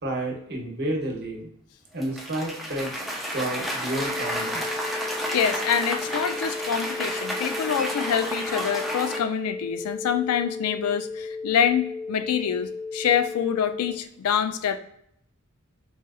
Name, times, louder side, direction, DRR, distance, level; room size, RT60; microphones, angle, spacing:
voice 1, 0.0-1.5 1.9-2.9 3.3-4.6, right 1 dB, 50° right, 0 dB, 0.8 m, -30 dB
Cheering / Applause, 2.0-9.2, equal, ahead, 0.4 m, -31 dB
sound 1, 3.9-13.9, left 4 dB, 20° left, 0.8 m, -35 dB
voice 2, 5.3-14.8, left 8 dB, 85° left, 10 dB, 0.3 m, -26 dB
4.0 x 2.4 x 2.3 m, 0.70 s
head